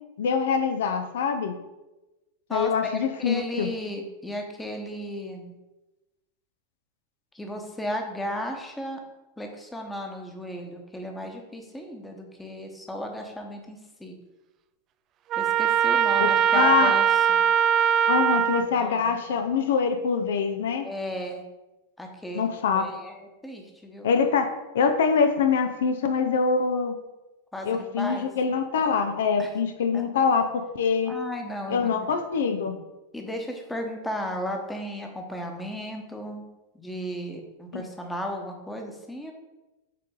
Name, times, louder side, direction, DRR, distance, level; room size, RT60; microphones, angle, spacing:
voice 1, 0.2-1.5 2.5-3.7 16.2-16.9 18.1-20.9 22.3-22.8 24.0-24.5 24.7-27.0 27.6-31.1 31.7-32.7 37.7-37.8, left 6 dB, 60° left, 6 dB, 0.6 m, -24 dB
voice 2, 2.5-5.5 7.3-9.0 9.4-14.2 15.4-17.4 18.6-19.3 20.8-21.4 22.0-22.5 22.7-24.1 27.5-28.3 29.4-29.5 29.9-30.0 31.0-32.1 33.1-36.4 36.7-39.3, equal, 5° left, 3 dB, 1.1 m, -35 dB
Trumpet, 15.3-18.7, right 8 dB, 35° right, 0.3 m, -21 dB
8.3 x 3.9 x 3.8 m, 1.0 s
figure-of-eight pair, 90°, 0 cm